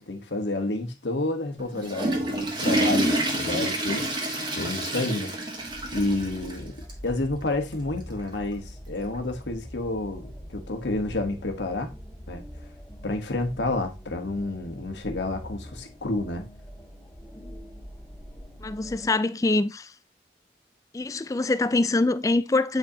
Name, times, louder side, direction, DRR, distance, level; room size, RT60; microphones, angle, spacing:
voice 1, 0.0-5.3 5.9-11.9 12.3-12.4 13.0-16.5, left 2 dB, 90° left, 1.2 m, -30 dB
Water / Toilet flush, 1.6-6.6 6.9-7.0 7.7-7.8 9.1-9.2, right 1 dB, 25° right, 1.4 m, -28 dB
sound 1, 5.7-19.1, equal, ahead, 1.9 m, -43 dB
voice 2, 18.6-19.9 20.9-22.8, left 2 dB, 20° left, 0.3 m, -24 dB
7.9 x 5.0 x 2.8 m
head